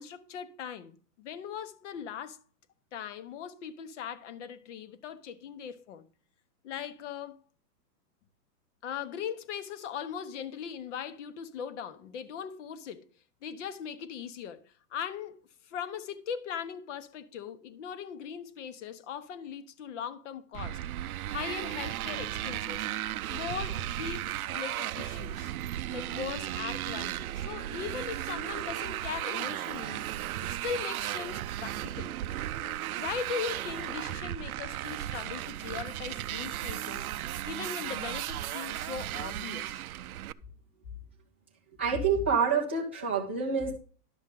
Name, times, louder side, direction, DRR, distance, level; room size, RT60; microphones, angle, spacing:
voice 1, 0.0-2.4 2.9-6.1 6.6-7.4 8.8-13.1 13.4-20.8 21.3-22.9 23.3-25.5 25.9-30.1 30.5-32.2 32.6-37.1 37.4-39.8, left 7 dB, 45° left, 1.1 m, -39 dB
Motorcycle, 20.5-40.3, right 13 dB, 65° right, 0.6 m, -35 dB
voice 2, 41.8-43.7, right 5 dB, 10° right, 0.3 m, -27 dB
11.5 x 7.2 x 3.8 m
hypercardioid pair, 155°, 48 cm